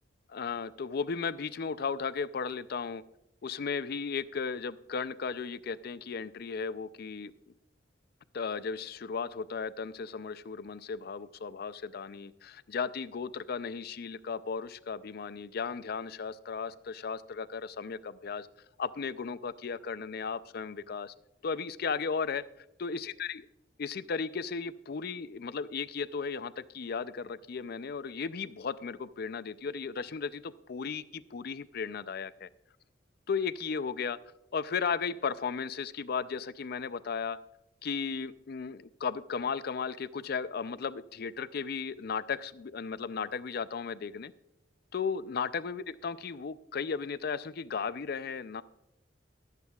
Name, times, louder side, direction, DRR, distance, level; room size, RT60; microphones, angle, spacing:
voice 1, 0.3-3.0 3.4-7.3 8.3-18.5 18.8-21.1 21.4-22.4 22.8-23.4 23.8-32.5 33.3-34.2 34.5-37.4 37.8-44.3 44.9-48.6, left 5 dB, 60° left, 0.5 m, -35 dB
22.0 x 8.2 x 2.3 m
head